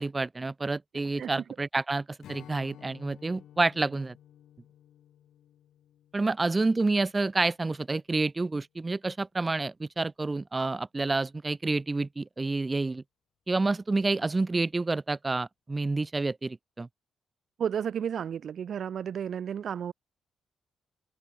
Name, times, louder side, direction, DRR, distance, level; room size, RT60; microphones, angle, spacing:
voice 1, 0.0-4.1 6.1-13.0 13.5-16.9, right 3 dB, 15° right, 0.9 m, -29 dB
Strum, 2.2-7.6, left 11 dB, 75° left, 5.7 m, -54 dB
voice 2, 17.6-19.9, right 8 dB, 50° right, 1.1 m, -32 dB
wide cardioid pair, 170°, 0 cm